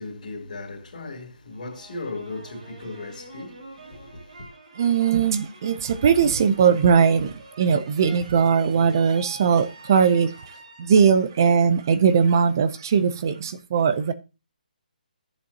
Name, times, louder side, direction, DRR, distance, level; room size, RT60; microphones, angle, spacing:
voice 1, 0.0-4.5, left 2 dB, 40° left, 2.7 m, -37 dB
sound 1, 1.5-11.3 11.7-12.4, right 2 dB, 50° right, 2.2 m, -47 dB
voice 2, 4.8-10.4 10.8-14.1, right 6 dB, 25° right, 0.5 m, -20 dB
14.0 x 7.6 x 2.8 m
hypercardioid pair, 175°, 5 cm